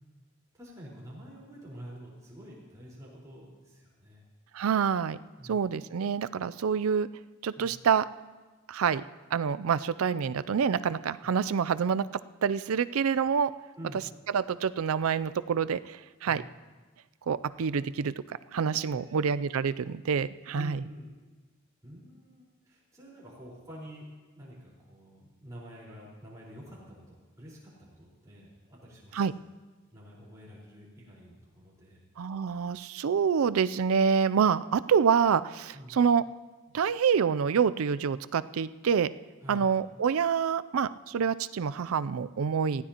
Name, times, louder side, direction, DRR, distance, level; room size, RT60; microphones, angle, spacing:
voice 1, 0.5-4.2 5.4-5.6 7.5-7.7 11.2-11.3 13.8-14.1 16.2-16.5 18.8-19.2 20.5-21.1 21.8-24.1 24.3-29.2 29.9-32.0 35.7-36.0 39.4-39.7, equal, 15° right, -6 dB, 4.3 m, -48 dB
voice 2, 4.5-5.2 5.4-7.1 7.4-8.0 8.7-9.0 9.3-12.1 12.4-13.5 14.3-16.4 17.3-20.8 29.1-29.3 32.2-36.2 36.7-39.1 39.5-42.8, right 6 dB, 85° right, 15 dB, 0.4 m, -27 dB
19.5 x 15.0 x 2.9 m, 1.3 s
head